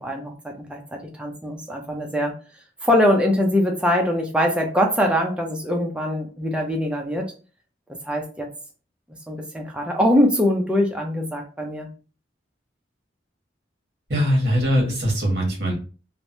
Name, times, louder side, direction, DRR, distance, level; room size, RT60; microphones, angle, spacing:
voice 1, 0.0-2.3 2.8-7.3 8.0-8.5 9.3-11.9, left 1 dB, 5° right, 1 dB, 0.5 m, -22 dB
voice 2, 14.1-15.7, equal, 55° right, 0 dB, 1.1 m, -21 dB
3.2 x 2.1 x 2.6 m, 0.36 s
head